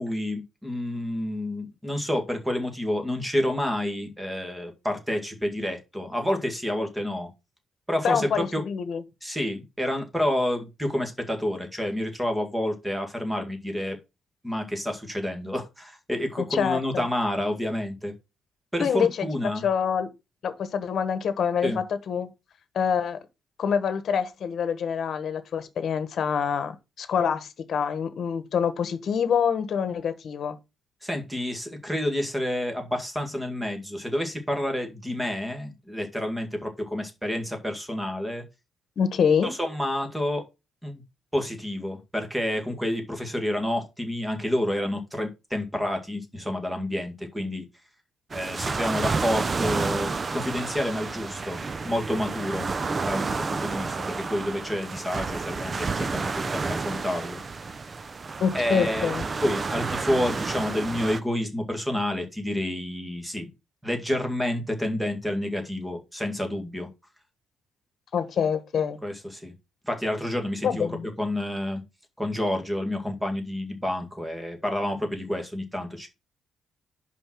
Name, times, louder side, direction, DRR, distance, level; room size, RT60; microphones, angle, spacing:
voice 1, 0.0-7.3 7.9-8.6 9.2-14.0 14.4-18.1 18.7-19.7 21.6-21.8 31.0-38.4 39.4-40.4 40.8-41.0 41.3-47.7 48.3-52.7 53.1-57.7 58.5-59.1 59.4-63.5 63.8-66.9 69.0-69.5 69.8-70.9 71.2-71.8 72.2-76.1, left 1 dB, 5° right, 2.0 m, -29 dB
voice 2, 8.0-9.0 16.4-17.1 18.8-19.3 19.6-20.1 20.4-22.3 22.7-23.2 23.6-30.6 39.0-39.5 58.4-59.2 68.1-69.0 70.6-71.1, left 7 dB, 60° left, 1.2 m, -26 dB
sound 1, 48.3-61.2, right 4 dB, 30° right, 0.5 m, -30 dB
5.3 x 4.5 x 6.0 m
cardioid pair, 110°, 0 cm